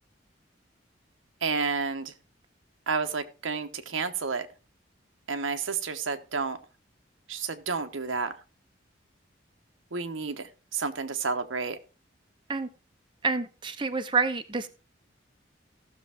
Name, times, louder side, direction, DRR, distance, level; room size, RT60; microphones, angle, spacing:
voice 1, 1.4-2.1 2.9-4.5 5.3-6.6 7.3-8.3 9.9-11.8, right 4 dB, 90° right, 1.1 m, -30 dB
voice 2, 13.2-14.7, right 4 dB, 25° right, 0.7 m, -28 dB
15.0 x 6.6 x 3.5 m
head